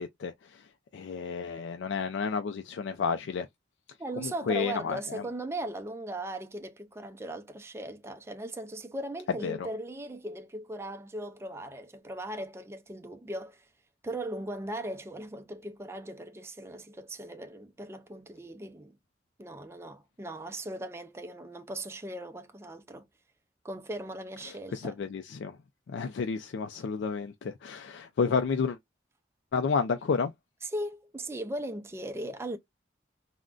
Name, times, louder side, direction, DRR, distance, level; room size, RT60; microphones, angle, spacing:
voice 1, 0.0-3.5 4.2-5.3 9.4-9.7 24.4-25.6 25.9-28.8 29.5-30.3, left 5 dB, 75° left, 0.3 m, -31 dB
voice 2, 4.0-13.7 14.0-19.0 19.4-23.1 23.6-24.9 30.7-32.6, right 1 dB, 15° right, 0.3 m, -38 dB
3.7 x 2.1 x 2.3 m
head